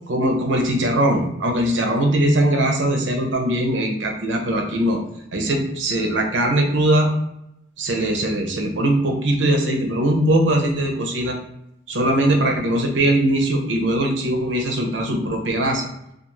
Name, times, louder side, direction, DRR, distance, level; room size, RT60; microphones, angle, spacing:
voice 1, 0.1-5.0 5.3-7.1 7.8-11.4 11.9-15.8, right 1 dB, 90° right, 2 dB, 0.6 m, -20 dB
2.4 x 2.4 x 3.0 m, 0.80 s
head